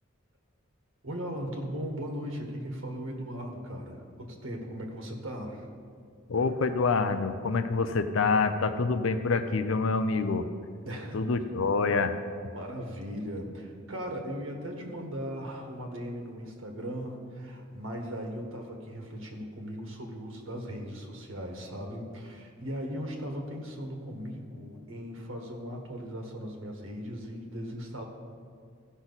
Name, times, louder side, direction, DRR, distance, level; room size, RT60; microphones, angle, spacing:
voice 1, 1.0-5.7 10.8-11.3 12.5-28.0, equal, 80° right, 2 dB, 1.5 m, -38 dB
voice 2, 6.3-10.5 11.1-12.2, left 4 dB, 80° left, 9 dB, 0.5 m, -26 dB
15.0 x 6.1 x 4.1 m, 2.2 s
head